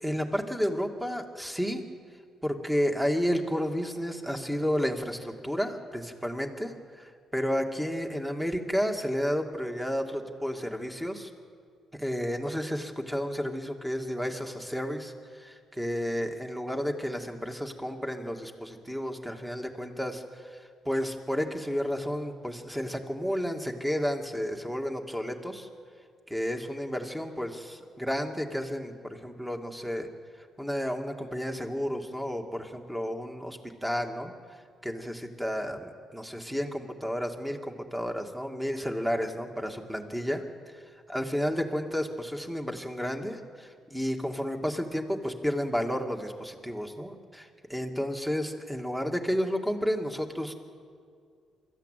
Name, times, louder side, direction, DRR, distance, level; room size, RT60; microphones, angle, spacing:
voice 1, 0.0-1.8 2.4-11.3 12.0-20.6 20.9-25.7 26.3-30.1 30.6-34.3 34.8-40.4 41.1-50.5, equal, 5° right, 4 dB, 2.2 m, -31 dB
23.5 x 14.0 x 9.2 m, 2.1 s
cardioid pair, 90°, 0 cm